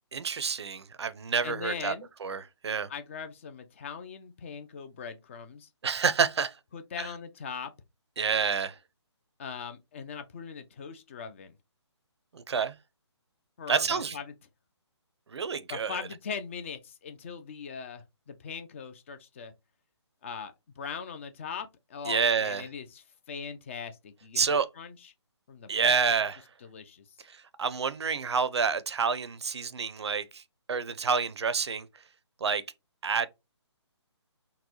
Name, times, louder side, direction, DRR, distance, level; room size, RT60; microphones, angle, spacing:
voice 1, 0.1-1.9 2.2-2.9 5.8-6.6 7.0-7.1 8.2-8.8 12.3-12.7 13.7-14.1 15.3-16.1 22.1-22.6 24.4-24.7 25.7-26.4 27.3-30.4 30.7-31.9 32.4-32.6 33.0-33.3, right 5 dB, 65° right, 0.5 m, -28 dB
voice 2, 1.4-2.1 2.9-5.7 6.7-7.7 9.4-11.6 13.6-14.3 15.7-19.5 20.2-24.4 24.8-25.1 25.5-26.0 26.6-27.0, left 6 dB, 25° left, 0.4 m, -40 dB
3.9 x 2.1 x 2.8 m
figure-of-eight pair, 145°, 15 cm